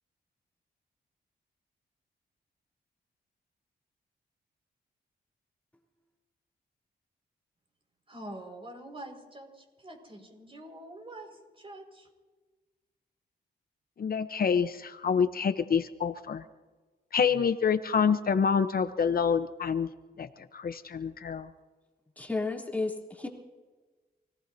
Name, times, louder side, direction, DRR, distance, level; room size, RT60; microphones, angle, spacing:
voice 1, 8.1-12.1, right 1 dB, 30° right, 2 dB, 5.3 m, -45 dB
voice 2, 14.0-16.4 17.1-19.9 20.2-20.3 20.5-21.5, left 6 dB, 60° left, 9 dB, 0.9 m, -27 dB
voice 3, 22.2-23.3, left 3 dB, 10° left, -1 dB, 3.1 m, -32 dB
28.0 x 18.0 x 2.8 m, 1.3 s
cardioid pair, 70°, 18 cm